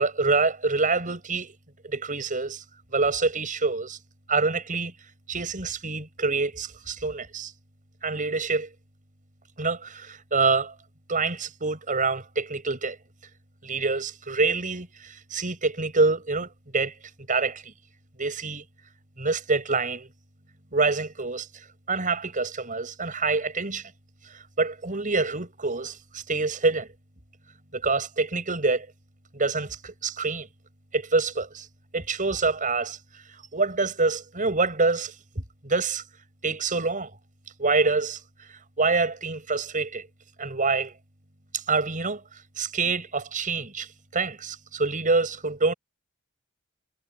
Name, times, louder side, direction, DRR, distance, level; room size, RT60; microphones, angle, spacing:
voice 1, 0.0-1.5 1.8-2.6 2.9-4.0 4.3-4.9 5.3-7.5 8.0-8.7 9.6-10.7 11.1-13.0 13.6-16.9 17.3-17.7 18.2-18.6 19.2-20.1 20.7-21.5 21.9-23.9 24.6-26.9 27.7-28.9 29.3-30.5 30.9-31.7 31.9-33.0 33.5-36.0 36.4-37.1 37.6-38.2 38.5-40.1 40.4-40.9 41.5-42.2 42.6-43.9 44.1-45.7, right 3 dB, 40° right, 6.2 m, -26 dB
head